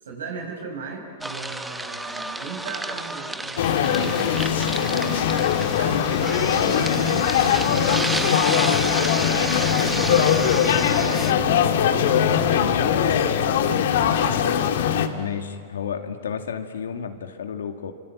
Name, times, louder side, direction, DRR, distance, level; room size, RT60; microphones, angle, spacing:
voice 1, 0.0-10.3 10.9-13.9 14.2-14.4 14.9-15.1, right 4 dB, 85° right, 2 dB, 7.1 m, -37 dB
sound 1, 1.2-11.3, right 2 dB, 5° right, 1.1 m, -31 dB
sound 2, 3.6-15.1, left 9 dB, 70° left, 1.9 m, -21 dB
voice 2, 15.2-17.9, left 7 dB, 85° left, 6 dB, 2.2 m, -31 dB
27.0 x 25.0 x 8.5 m, 2.2 s
hypercardioid pair, 125°, 0 cm